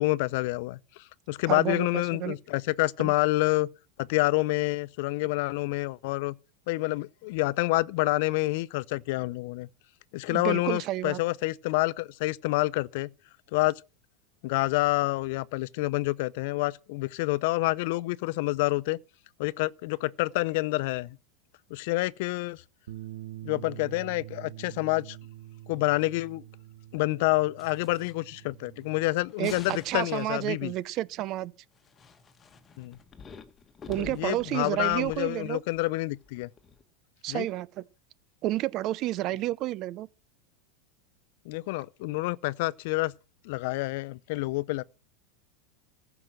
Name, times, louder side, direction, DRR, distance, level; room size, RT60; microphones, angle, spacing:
voice 1, 0.0-3.7 4.0-6.3 6.7-9.7 10.1-13.1 13.5-13.8 14.4-19.0 19.4-21.2 21.7-22.6 23.4-25.2 25.7-26.4 26.9-30.7 32.8-33.0 34.0-36.5 37.3-37.5 41.5-43.1 43.4-44.8, left 21 dB, 65° left, 0.6 m, -28 dB
voice 2, 1.5-2.4 3.0-3.1 10.3-11.2 29.4-31.5 33.9-35.6 37.2-37.7 38.4-40.1, right 15 dB, 45° right, 0.7 m, -30 dB
Bass guitar, 22.9-29.1, right 14 dB, 90° right, 1.0 m, -45 dB
sound 1, 27.6-28.5 28.8-28.9 29.2-30.5 31.7-36.8, left 5 dB, 20° left, 1.6 m, -49 dB
15.0 x 6.0 x 7.5 m
supercardioid pair, 135°, 0 cm